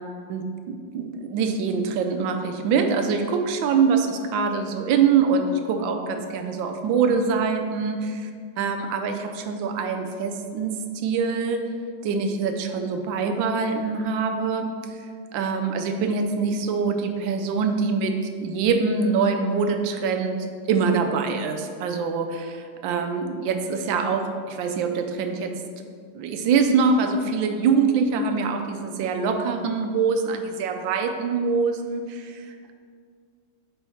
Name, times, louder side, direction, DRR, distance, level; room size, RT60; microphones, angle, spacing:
voice 1, 0.3-8.0 8.6-11.6 12.0-15.0 15.3-25.5 26.1-32.7, right 5 dB, 85° right, 5 dB, 1.4 m, -24 dB
4.6 x 4.5 x 5.5 m, 2.1 s
omnidirectional pair, 2.0 m